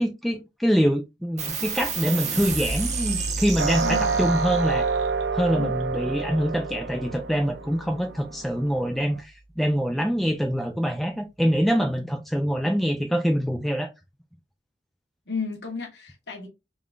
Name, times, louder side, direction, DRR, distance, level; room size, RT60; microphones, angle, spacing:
voice 1, 0.0-4.9 5.3-13.9, equal, ahead, 0.4 m, -25 dB
sound 1, 1.4-8.3, right 4 dB, 40° right, 1.0 m, -32 dB
sound 2, 3.6-9.2, right 4 dB, 80° right, 0.6 m, -29 dB
voice 2, 3.8-4.1 5.5-5.8 15.3-16.5, left 4 dB, 75° left, 1.2 m, -33 dB
3.7 x 3.5 x 2.4 m
head